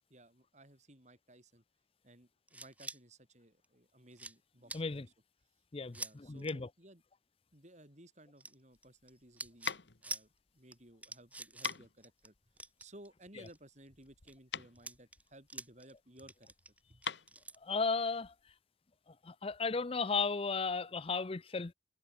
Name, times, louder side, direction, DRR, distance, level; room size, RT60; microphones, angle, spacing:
voice 1, 0.1-1.6 2.0-5.1 5.9-7.0 7.5-16.5 16.9-17.0, right 1 dB, 40° right, 7.4 m, -58 dB
sound 1, 2.5-3.0 3.6-3.7 4.1-4.4 4.7-4.8 5.9-6.1 6.4-6.5 8.4-9.1 9.4-9.8 10.0-10.2 10.7-10.8 11.0-11.8 12.0-12.3 12.6-13.6 14.0-14.3 14.8-17.6, right 2 dB, 10° right, 2.5 m, -45 dB
voice 2, 4.7-5.1 5.7-6.7 17.6-18.3 19.2-21.7, left 4 dB, 30° left, 0.5 m, -35 dB
sound 2, 8.7-18.6, left 7 dB, 70° left, 1.6 m, -45 dB
head